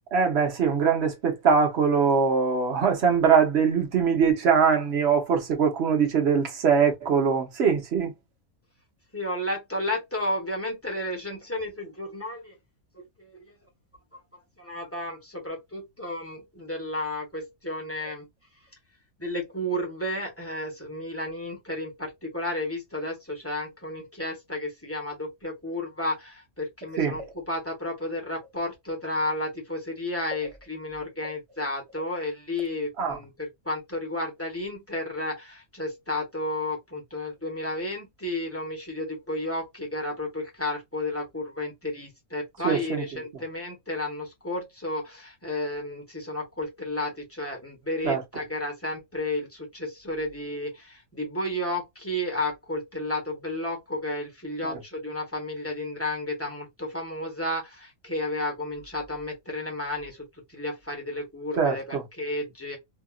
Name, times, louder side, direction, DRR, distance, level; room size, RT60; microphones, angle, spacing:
voice 1, 0.1-8.1 27.0-27.2 33.0-33.2 42.6-43.0 48.0-48.2 61.6-62.0, right 6 dB, 50° right, 1.1 m, -22 dB
voice 2, 9.1-12.5 12.9-13.5 14.6-18.3 19.2-62.8, left 1 dB, 10° left, 1.0 m, -32 dB
2.8 x 2.5 x 2.3 m
omnidirectional pair, 1.5 m